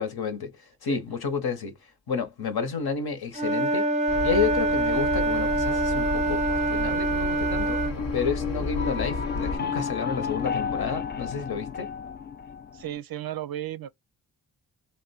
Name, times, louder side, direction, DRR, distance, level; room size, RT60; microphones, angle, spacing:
voice 1, 0.0-3.9 4.2-11.9, left 6 dB, 60° left, 1.1 m, -31 dB
Wind instrument woodwind instrument, 3.3-8.0, right 2 dB, 15° right, 0.7 m, -25 dB
sound 1, 4.1-9.6, left 2 dB, 80° left, 1.3 m, -33 dB
sound 2, 7.9-13.0, left 6 dB, 25° left, 0.4 m, -32 dB
voice 2, 12.7-13.9, right 12 dB, 55° right, 0.5 m, -34 dB
2.7 x 2.2 x 4.1 m
supercardioid pair, 45°, 43 cm